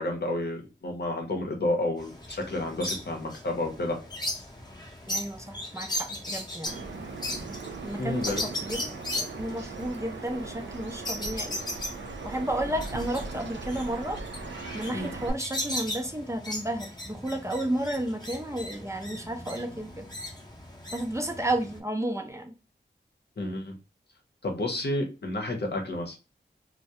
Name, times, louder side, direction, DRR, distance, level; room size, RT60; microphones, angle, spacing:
voice 1, 0.0-4.0 8.0-8.4 14.9-15.1 23.4-23.8 24.4-26.2, left 1 dB, 60° left, 2 dB, 0.7 m, -30 dB
sound 1, 2.0-21.8, left 1 dB, 20° left, 0.7 m, -38 dB
voice 2, 5.1-6.9 7.8-11.6 12.2-14.2 14.7-20.1 20.9-22.5, right 1 dB, 15° right, 3 dB, 0.5 m, -32 dB
Bird vocalization bird call bird song, 6.7-15.3, right 3 dB, 75° right, 0.4 m, -39 dB
2.2 x 2.1 x 2.7 m, 0.30 s
wide cardioid pair, 50°, 19 cm